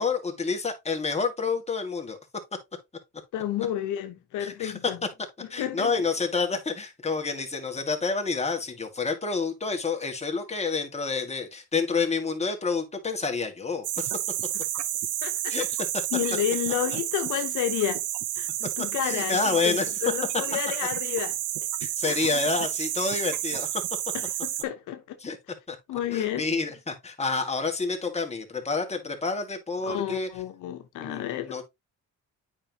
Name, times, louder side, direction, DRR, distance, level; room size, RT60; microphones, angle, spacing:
voice 1, 0.0-2.2 4.4-4.7 5.5-14.1 15.5-15.8 19.0-19.9 21.8-23.8 25.2-25.4 25.7-25.8 26.1-30.3 31.0-31.6, left 4 dB, 20° left, 2.1 m, -28 dB
voice 2, 3.3-5.0 5.6-5.9 15.2-15.5 16.1-18.0 18.3-18.5 18.8-21.4 22.1-22.4 24.1-25.2 25.9-26.5 29.8-31.6, left 11 dB, 85° left, 1.0 m, -31 dB
sound 1, 13.8-24.6, right 13 dB, 80° right, 0.8 m, -30 dB
8.6 x 5.4 x 2.9 m
cardioid pair, 90°, 30 cm